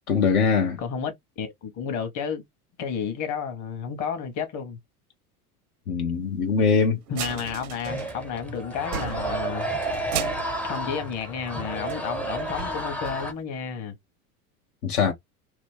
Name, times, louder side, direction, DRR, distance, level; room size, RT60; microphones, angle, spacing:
voice 1, 0.1-0.8 5.9-7.0 14.8-15.1, left 5 dB, 80° left, 0.9 m, -22 dB
voice 2, 0.8-2.4 2.8-4.8 7.1-9.7 10.1-10.2 10.7-13.9, left 6 dB, 40° left, 1.1 m, -31 dB
sound 1, 7.1-8.5 8.8-11.6 11.9-12.0 12.4-13.4, right 8 dB, 80° right, 0.6 m, -36 dB
sound 2, 7.9-13.3, right 1 dB, 5° left, 0.4 m, -31 dB
3.0 x 2.1 x 3.4 m
hypercardioid pair, 85°, 44 cm